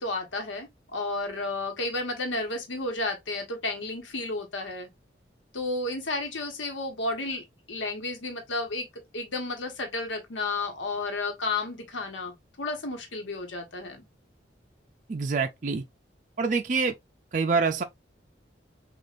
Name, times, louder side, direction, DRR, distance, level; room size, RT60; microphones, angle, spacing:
voice 1, 0.0-4.9 5.5-8.9 9.1-14.0, left 2 dB, 90° left, 1.1 m, -32 dB
voice 2, 15.1-15.8 16.4-17.0 17.3-17.8, right 4 dB, 40° right, 0.4 m, -26 dB
6.4 x 2.4 x 2.5 m
head